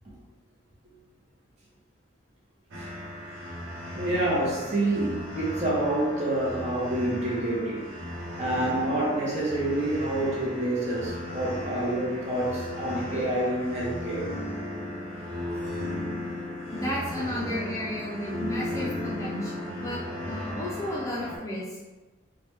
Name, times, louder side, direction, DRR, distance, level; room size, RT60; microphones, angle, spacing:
sound 1, 2.7-21.4, left 1 dB, 90° right, 0.7 m, -36 dB
voice 1, 4.0-7.9 8.4-14.3, right 1 dB, 35° right, -5 dB, 0.7 m, -27 dB
voice 2, 16.7-21.8, equal, 15° left, -6 dB, 0.4 m, -33 dB
3.1 x 2.2 x 3.0 m, 1.2 s
head